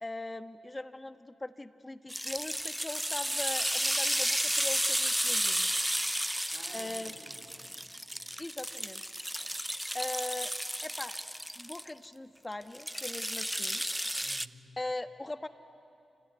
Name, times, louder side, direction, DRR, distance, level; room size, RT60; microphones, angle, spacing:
voice 1, 0.0-5.7 6.7-7.1 8.4-9.0 9.4-9.5 9.9-10.5 10.8-13.8 14.8-15.5, left 2 dB, 25° left, 9 dB, 1.4 m, -40 dB
sound 1, 2.1-11.9 12.7-14.5, equal, 5° right, 0.6 m, -33 dB
voice 2, 6.5-8.4 14.2-14.7, right 2 dB, 70° right, -1 dB, 3.9 m, -54 dB
29.5 x 17.5 x 9.4 m, 2.6 s
supercardioid pair, 45°, 0 cm